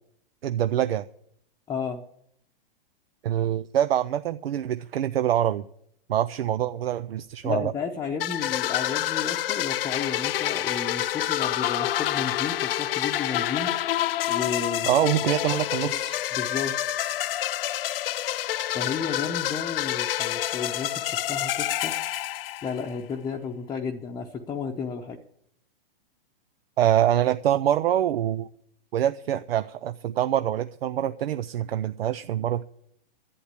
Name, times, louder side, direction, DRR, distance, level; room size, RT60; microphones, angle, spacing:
voice 1, 0.4-1.1 3.2-5.7 6.1-7.7 14.9-16.1 26.8-28.5 28.9-32.6, right 11 dB, 80° right, 10 dB, 0.6 m, -25 dB
voice 2, 1.7-2.0 7.4-14.9 15.8-16.0 16.3-16.7 18.7-21.9 22.6-25.2, left 6 dB, 15° left, 0 dB, 0.8 m, -33 dB
sound 1, 8.2-23.0, left 13 dB, 70° left, 0.5 m, -28 dB
11.5 x 8.7 x 8.2 m, 0.70 s
hypercardioid pair, 135°, 29 cm